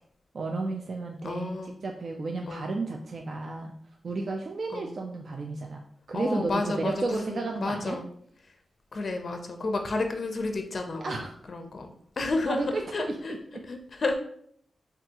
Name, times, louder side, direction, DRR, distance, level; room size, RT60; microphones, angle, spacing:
voice 1, 0.3-3.7 4.0-5.8 6.1-8.0 11.0-11.3 12.4-13.1 13.5-13.6, right 3 dB, 55° right, 2 dB, 0.3 m, -32 dB
voice 2, 1.2-1.8 2.5-2.7 4.7-4.9 6.1-8.1 8.9-12.6 12.9-13.4 13.6-14.2, left 3 dB, 50° left, 5 dB, 0.4 m, -31 dB
3.4 x 2.3 x 2.8 m, 0.65 s
wide cardioid pair, 100°, 0 cm